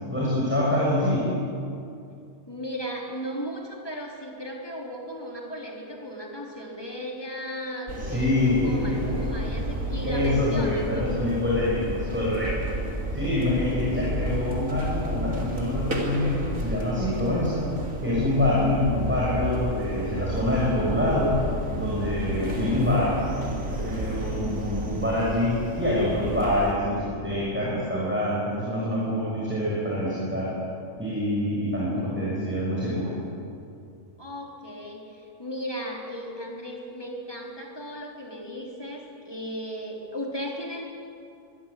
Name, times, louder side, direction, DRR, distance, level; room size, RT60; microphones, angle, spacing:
voice 1, 0.1-1.3 8.0-9.2 10.0-12.7 13.1-17.7 18.0-21.4 21.8-23.2 23.6-30.5 31.0-33.1, left 1 dB, 10° right, -7 dB, 6.5 m, -26 dB
voice 2, 2.5-11.1 34.2-40.8, equal, 15° left, -1 dB, 3.8 m, -36 dB
sound 1, 7.9-26.7, equal, 75° right, 3.9 m, -32 dB
24.5 x 21.0 x 8.6 m, 2.5 s
omnidirectional pair, 1.4 m